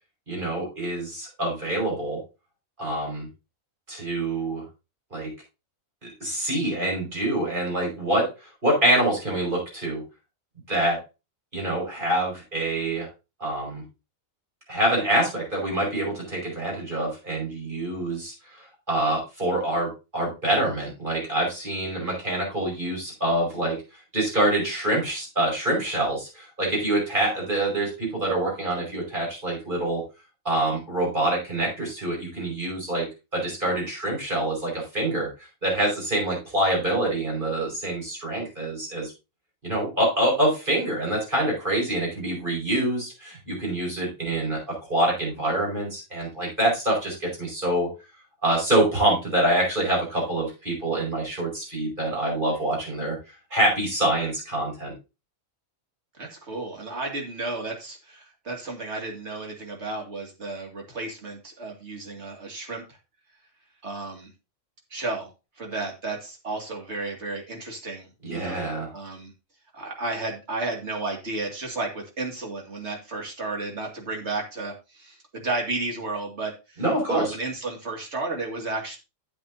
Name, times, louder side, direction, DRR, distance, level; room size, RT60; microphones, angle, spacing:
voice 1, 0.3-2.2 2.8-3.3 3.9-4.6 5.1-5.3 6.2-10.0 10.7-11.0 11.5-13.1 13.4-13.8 14.7-18.6 18.9-23.8 24.1-30.0 30.5-39.1 39.6-47.9 48.4-53.2 53.5-54.9 68.2-68.9 76.8-77.3, right 1 dB, 35° right, -2 dB, 5.4 m, -26 dB
voice 2, 56.2-62.8 63.8-64.3 64.9-65.3 65.6-69.3 69.7-76.8 77.1-79.0, right 3 dB, 55° right, 1 dB, 2.5 m, -33 dB
11.5 x 7.8 x 2.7 m, 0.28 s
omnidirectional pair, 1.4 m